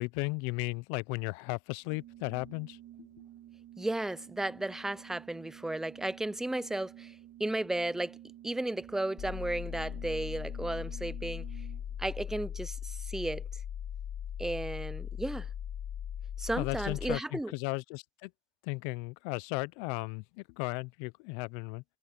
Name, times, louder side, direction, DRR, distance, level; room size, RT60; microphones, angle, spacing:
voice 1, 0.0-3.1 16.6-18.3 18.6-21.8, left 27 dB, 85° left, 0.7 m, -35 dB
Organ, 1.8-12.1, right 13 dB, 60° right, 5.6 m, -52 dB
voice 2, 3.8-7.1 7.4-8.2 8.4-11.4 12.0-13.4 14.4-15.5 16.4-17.5, right 1 dB, ahead, 0.4 m, -34 dB
sound 1, 9.2-17.2, left 9 dB, 40° left, 1.2 m, -39 dB
supercardioid pair, 80°, 33 cm